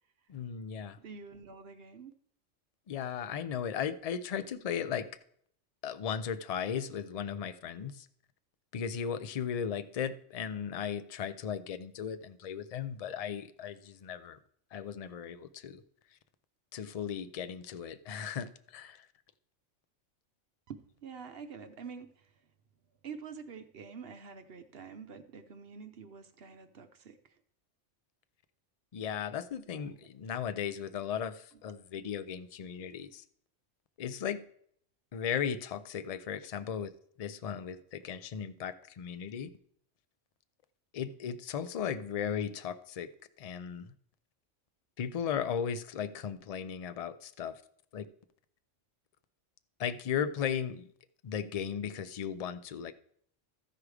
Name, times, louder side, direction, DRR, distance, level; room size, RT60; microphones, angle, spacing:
voice 1, 0.3-1.0 2.9-5.1 5.8-8.1 8.7-14.4 14.7-15.8 16.7-19.0 28.9-33.2 34.0-34.4 35.1-36.9 37.2-39.5 40.9-43.1 43.4-43.9 45.0-47.6 47.9-48.1 49.8-50.9 51.2-52.9, left 8 dB, 55° left, 12 dB, 0.4 m, -36 dB
voice 2, 1.0-2.1 20.7-22.3 23.0-27.2 29.8-30.1, right 6 dB, 60° right, 9 dB, 0.9 m, -47 dB
14.5 x 4.9 x 4.8 m, 0.65 s
omnidirectional pair, 1.2 m